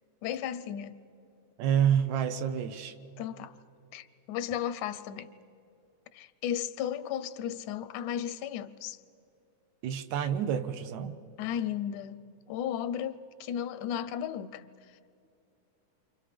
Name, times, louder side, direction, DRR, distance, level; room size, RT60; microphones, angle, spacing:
voice 1, 0.2-1.0 3.2-3.6 3.9-5.3 6.1-9.0 11.4-12.2 12.5-15.0, left 9 dB, 85° left, 2.2 m, -35 dB
voice 2, 1.6-2.9 9.8-11.2, right 9 dB, 75° right, 2.1 m, -28 dB
29.5 x 26.0 x 5.1 m
omnidirectional pair, 3.4 m